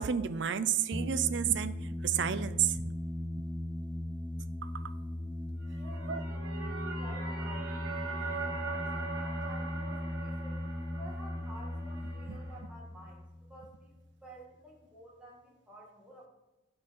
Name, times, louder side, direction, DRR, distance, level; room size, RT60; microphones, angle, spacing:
voice 1, 0.0-2.8 4.6-4.9 6.1-6.2, right 9 dB, 60° right, 13 dB, 0.4 m, -31 dB
sound 1, 0.9-14.1, left 1 dB, 10° left, 0.7 m, -38 dB
voice 2, 5.7-10.6 11.0-13.2 13.5-13.9 14.2-16.3, equal, 5° right, -4 dB, 1.9 m, -52 dB
sound 2, 5.7-12.6, right 4 dB, 80° right, 1.7 m, -41 dB
9.5 x 4.5 x 5.3 m, 1.0 s
head